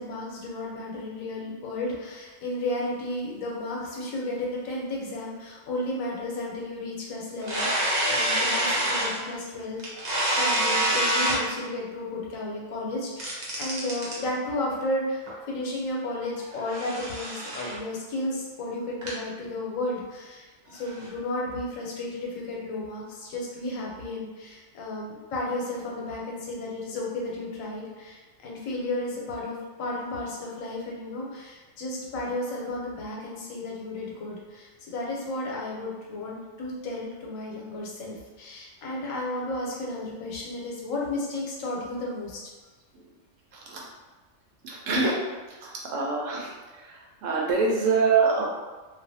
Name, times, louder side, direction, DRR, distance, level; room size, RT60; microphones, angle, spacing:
voice 1, 0.0-9.8 10.0-42.4, left 1 dB, 90° left, -3 dB, 1.1 m, -33 dB
sound 1, 7.4-9.3 9.8-11.4 13.2-14.2 15.3-15.4 16.3-17.8 19.0-19.1 20.7-21.1, right 1 dB, 45° right, 0.6 m, -26 dB
voice 2, 44.6-45.2 45.6-46.5 46.8-48.5, right 4 dB, 80° right, -3 dB, 1.0 m, -25 dB
2.5 x 2.3 x 2.6 m, 1.3 s
omnidirectional pair, 1.3 m